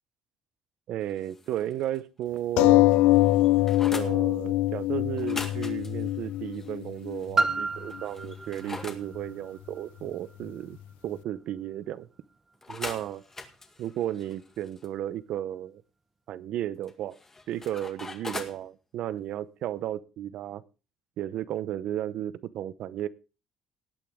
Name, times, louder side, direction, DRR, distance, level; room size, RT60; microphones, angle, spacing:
voice 1, 0.9-2.8 3.9-10.8 11.0-12.1 12.7-13.2 13.8-15.8 16.3-17.2 17.5-20.6 21.2-23.1, right 12 dB, 65° right, 17 dB, 0.8 m, -34 dB
sound 1, 1.1-2.0 2.4-2.5 2.8-4.2 5.2-7.3 7.9-9.0 12.6-14.9 16.8-18.6, left 3 dB, 20° left, 2.0 m, -42 dB
sound 2, 2.6-7.6 8.3-8.4 8.7-8.8, left 17 dB, 85° left, 0.7 m, -23 dB
Piano, 7.4-12.8 13.5-13.6, right 3 dB, 20° right, 1.2 m, -33 dB
19.0 x 8.6 x 3.7 m, 0.32 s
cardioid pair, 115°, 2 cm